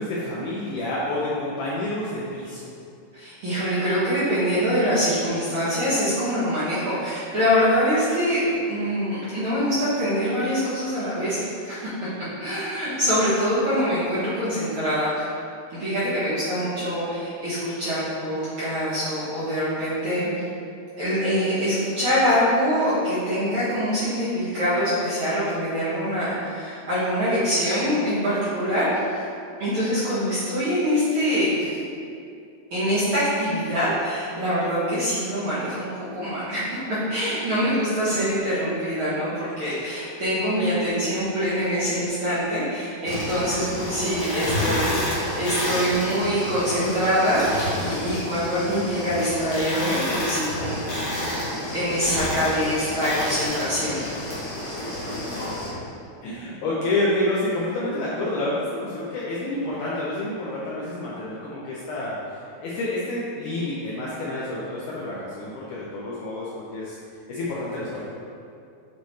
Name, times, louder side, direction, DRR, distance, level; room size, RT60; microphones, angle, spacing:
voice 1, 0.0-2.6 56.2-67.0 67.3-68.0, left 1 dB, 85° left, -7 dB, 1.7 m, -28 dB
voice 2, 3.1-11.9 12.4-15.3 15.7-20.3 21.0-29.2 29.6-31.8 32.7-36.8 37.1-54.0, equal, 55° right, -13 dB, 1.4 m, -24 dB
sound 1, 43.0-55.7, left 1 dB, 60° left, 1.2 m, -29 dB
8.2 x 3.2 x 4.1 m, 2.4 s
omnidirectional pair, 4.5 m